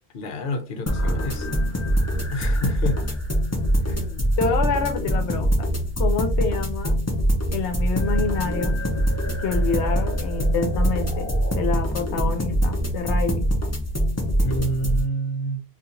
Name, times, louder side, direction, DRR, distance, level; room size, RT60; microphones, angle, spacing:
voice 1, 0.1-1.5 2.3-3.2 3.8-4.3 14.4-15.6, right 1 dB, 65° left, 0.9 m, -29 dB
sound 1, 0.9-15.0, equal, 20° left, 0.5 m, -23 dB
voice 2, 4.4-7.0 7.5-8.7 9.4-11.3 11.5-13.4, left 5 dB, 85° left, 0.9 m, -27 dB
2.8 x 2.5 x 3.7 m
omnidirectional pair, 1.1 m